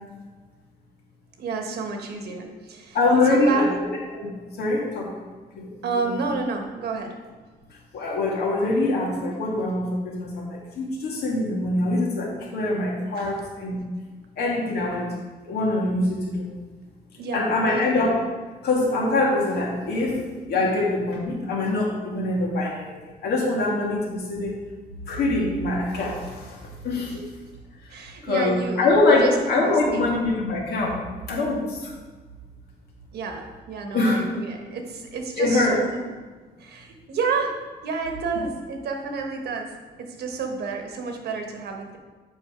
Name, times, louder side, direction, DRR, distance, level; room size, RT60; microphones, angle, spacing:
voice 1, 1.4-3.0 3.2-3.7 5.8-7.1 13.2-13.4 17.2-17.9 20.5-20.8 27.1-27.2 27.9-29.3 29.9-30.2 33.1-36.0 36.6-37.6 37.8-42.0, right 4 dB, 85° right, 4 dB, 1.2 m, -30 dB
voice 2, 2.9-3.9 4.1-4.3 4.6-5.1 5.6-5.7 6.0-6.1 7.9-13.8 14.4-15.1 15.5-16.5 17.3-18.2 18.6-20.2 20.5-22.9 23.2-24.5 25.0-26.6 26.8-27.2 28.2-31.0 31.3-31.9 33.9-34.2 35.4-35.8, left 2 dB, 85° left, -3 dB, 2.3 m, -23 dB
7.7 x 5.5 x 5.0 m, 1.4 s
cardioid pair, 135°, 16 cm